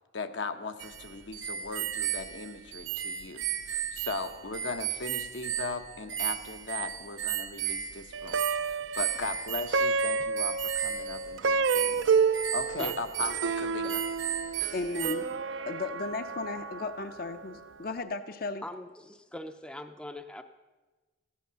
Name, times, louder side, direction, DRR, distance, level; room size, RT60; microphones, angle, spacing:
voice 1, 0.1-12.1 12.5-14.0, left 3 dB, 75° left, 8 dB, 0.9 m, -38 dB
sound 1, 0.8-15.2, right 10 dB, 90° right, 1.0 m, -35 dB
Plucked string instrument, 8.1-17.5, right 5 dB, 75° right, 0.4 m, -30 dB
voice 2, 14.7-15.4 15.7-18.6, left 3 dB, 50° left, 10 dB, 0.6 m, -35 dB
voice 3, 18.6-20.4, left 1 dB, 5° left, 8 dB, 0.4 m, -41 dB
14.5 x 10.5 x 6.8 m, 1.3 s
head